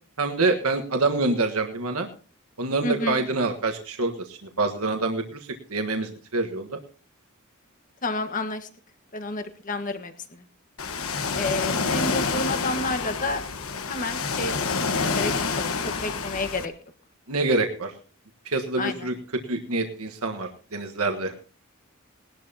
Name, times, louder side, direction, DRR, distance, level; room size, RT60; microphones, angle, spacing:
voice 1, 0.2-2.1 2.6-6.8 17.3-17.9 18.4-19.1 19.5-21.4, right 3 dB, 85° right, 4 dB, 1.5 m, -26 dB
voice 2, 2.8-3.2 8.0-8.7 9.1-10.4 11.4-13.4 13.9-14.9 15.1-16.7 18.8-19.1, left 2 dB, 40° left, 7 dB, 1.5 m, -30 dB
Ocean, 10.8-16.7, left 4 dB, 75° left, 1.2 m, -28 dB
19.5 x 12.0 x 2.9 m, 0.37 s
head